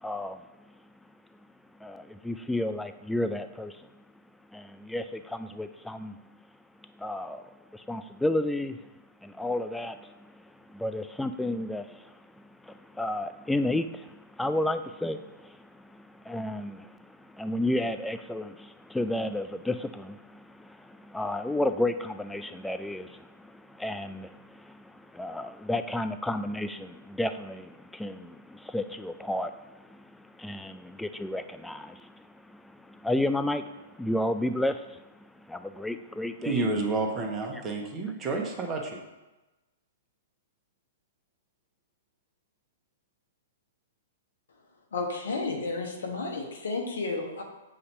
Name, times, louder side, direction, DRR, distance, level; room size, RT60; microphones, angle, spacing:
voice 1, 0.0-0.4 1.8-3.9 4.5-6.2 6.8-7.4 7.7-8.8 9.2-12.1 12.6-36.6, left 1 dB, 5° left, 9 dB, 0.3 m, -32 dB
voice 2, 36.4-39.0, right 3 dB, 25° right, 1 dB, 1.1 m, -30 dB
voice 3, 44.9-47.4, left 3 dB, 75° left, 2 dB, 1.1 m, -32 dB
6.6 x 2.8 x 5.3 m, 1.1 s
hypercardioid pair, 120°, 0 cm